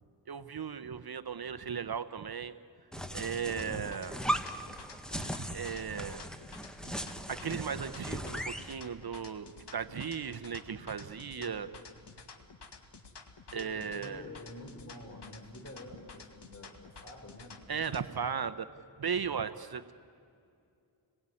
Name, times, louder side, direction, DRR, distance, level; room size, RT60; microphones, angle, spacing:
voice 1, 0.3-2.5 3.1-4.2 5.1-5.2 5.5-6.2 7.3-11.7 13.5-14.2 17.7-18.7 19.0-19.9, right 6 dB, 55° right, 11 dB, 0.9 m, -36 dB
sound 1, 2.9-8.7, equal, ahead, 1.5 m, -38 dB
sound 2, 3.4-18.1, left 4 dB, 65° left, 2.2 m, -52 dB
voice 2, 13.5-17.9, left 1 dB, 35° left, 2 dB, 5.0 m, -48 dB
28.5 x 21.0 x 9.9 m, 2.5 s
wide cardioid pair, 100°, 45 cm